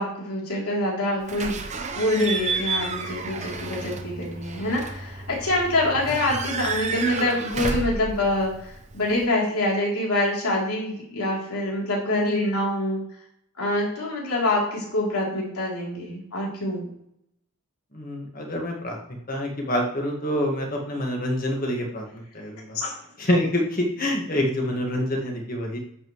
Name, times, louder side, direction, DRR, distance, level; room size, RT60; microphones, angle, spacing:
voice 1, 0.0-1.6 1.9-13.0 13.6-16.9 22.7-22.9, left 1 dB, 85° left, -3 dB, 3.4 m, -25 dB
Slam / Squeak / Alarm, 1.3-9.2, right 4 dB, 30° right, 0.8 m, -31 dB
voice 2, 17.9-19.0 19.3-22.8 23.2-25.8, left 1 dB, 40° left, 0 dB, 1.8 m, -26 dB
10.5 x 7.6 x 3.2 m, 0.73 s
head